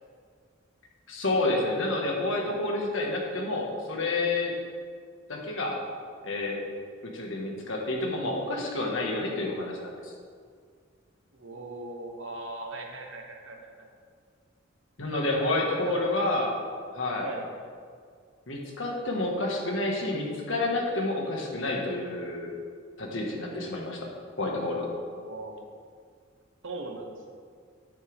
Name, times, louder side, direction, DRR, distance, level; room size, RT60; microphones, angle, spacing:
voice 1, 1.1-4.5 5.3-5.8 6.2-6.6 7.0-10.1 15.0-16.5 16.9-17.3 18.5-22.5 23.0-24.1 24.4-24.9, left 2 dB, 70° left, 0 dB, 1.7 m, -29 dB
voice 2, 2.0-2.6 11.3-13.9 15.1-16.4 17.2-17.4 25.1-25.6 26.6-27.2, right 2 dB, 70° right, 2 dB, 1.3 m, -40 dB
9.5 x 9.1 x 3.6 m, 2.1 s
head